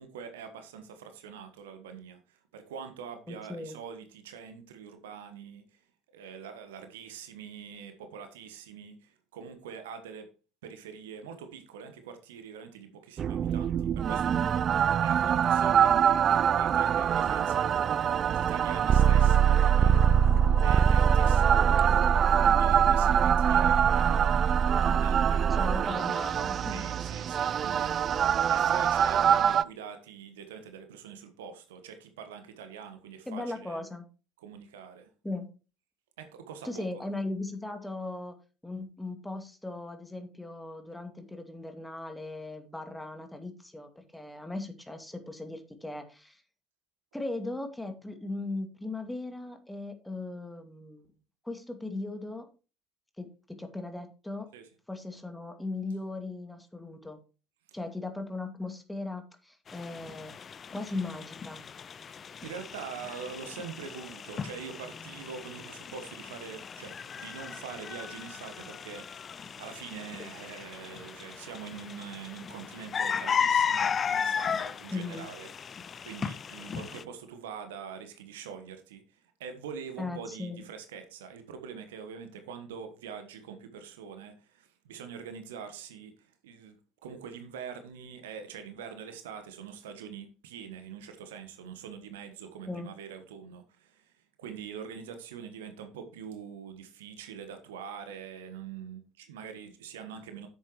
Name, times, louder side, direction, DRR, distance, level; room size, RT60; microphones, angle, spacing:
voice 1, 0.0-5.8 6.1-10.3 10.6-14.7 15.0-17.8 18.1-20.4 20.6-22.0 22.4-25.9 26.7-27.9 28.5-33.8 34.4-35.1 36.2-36.9 54.5-54.7 57.7-57.8 62.4-100.5, right 7 dB, 75° right, 1.3 m, -44 dB
voice 2, 3.3-3.8 25.5-26.8 33.3-34.1 35.2-35.5 36.6-38.3 38.6-46.4 47.1-51.1 51.4-52.5 53.2-54.5 54.9-57.2 57.7-60.3 60.7-61.6 74.9-75.3 80.0-80.6 92.7-92.9, left 2 dB, 5° left, 2.2 m, -38 dB
sound 1, 13.2-29.6, right 8 dB, 40° right, 0.4 m, -23 dB
sound 2, 59.7-77.0, left 7 dB, 35° left, 0.5 m, -35 dB
10.5 x 7.9 x 3.1 m
figure-of-eight pair, 60°, 0 cm